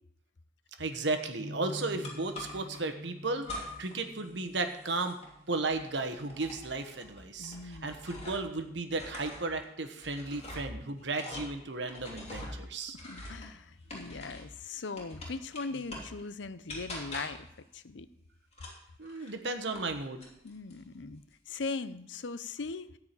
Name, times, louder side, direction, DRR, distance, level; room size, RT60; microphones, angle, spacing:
voice 1, 0.8-5.2 5.5-13.0 19.0-20.2, right 3 dB, 70° right, 6 dB, 1.2 m, -34 dB
sound 1, 1.4-7.5, left 1 dB, 40° right, 1.3 m, -48 dB
sound 2, 2.0-2.8 3.4-4.0 4.3-8.6 8.9-14.6 15.0-16.2 16.7-17.5 18.5-19.9 20.2-20.8, left 1 dB, 35° left, 2.8 m, -44 dB
voice 2, 7.4-7.9 12.5-12.6 13.0-17.5 17.7-18.1 20.4-22.9, left 4 dB, 75° left, 14 dB, 0.6 m, -40 dB
13.5 x 4.8 x 8.9 m, 0.76 s
head